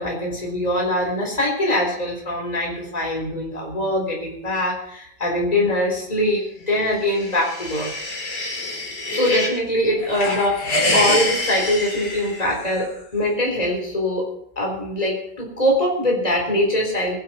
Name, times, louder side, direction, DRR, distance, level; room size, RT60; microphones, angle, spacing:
voice 1, 0.0-7.9 9.1-14.3 14.6-17.2, left 1 dB, 20° left, -1 dB, 4.1 m, -23 dB
sound 1, 6.9-9.6 10.0-12.9, left 2 dB, 65° left, 4.3 m, -25 dB
20.5 x 11.5 x 4.4 m, 0.72 s
omnidirectional pair, 2.0 m